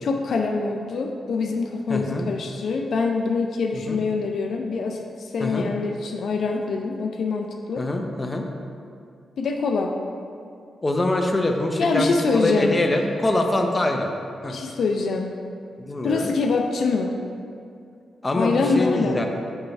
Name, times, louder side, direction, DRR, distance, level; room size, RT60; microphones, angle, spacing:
voice 1, 0.0-7.8 9.4-10.0 11.8-12.8 14.5-15.3 16.0-17.2 18.3-19.3, left 4 dB, 70° left, 2 dB, 0.4 m, -24 dB
voice 2, 1.9-2.2 3.7-4.0 5.4-5.7 7.8-8.5 10.8-14.1 14.4-14.6 15.8-16.3 18.2-19.3, left 1 dB, 25° left, 3 dB, 0.7 m, -24 dB
6.6 x 3.2 x 5.7 m, 2.4 s
cardioid pair, 75°, 0 cm